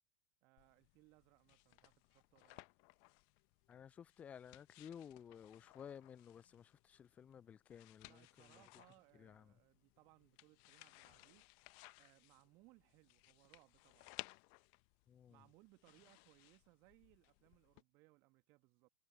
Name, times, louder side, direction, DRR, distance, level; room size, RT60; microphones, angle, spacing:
voice 1, 0.4-2.7 8.0-11.5 12.0-14.1 15.3-18.9, right 24 dB, 45° right, 2.0 m, -69 dB
sound 1, 0.6-17.8, left 40 dB or more, 50° left, 1.3 m, -61 dB
voice 2, 3.7-8.6 9.1-9.5 15.1-15.4, left 8 dB, 25° left, 0.9 m, -55 dB
figure-of-eight pair, 80°, 5 cm